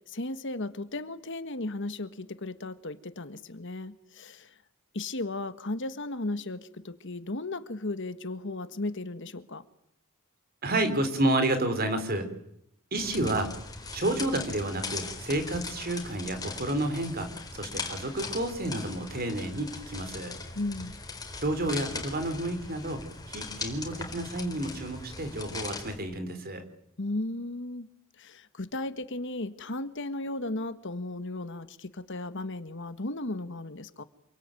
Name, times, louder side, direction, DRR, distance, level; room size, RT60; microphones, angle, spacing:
voice 1, 0.1-4.5 4.9-9.6 20.5-20.9 27.0-27.9 28.2-34.0, left 2 dB, 60° left, 12 dB, 1.5 m, -35 dB
voice 2, 10.6-12.3 12.9-13.5 13.9-20.3 21.4-23.0 23.3-26.6, right 1 dB, 45° right, 9 dB, 4.0 m, -30 dB
sound 1, 13.0-25.9, left 4 dB, 20° left, 4.4 m, -40 dB
28.0 x 23.5 x 9.1 m, 0.75 s
head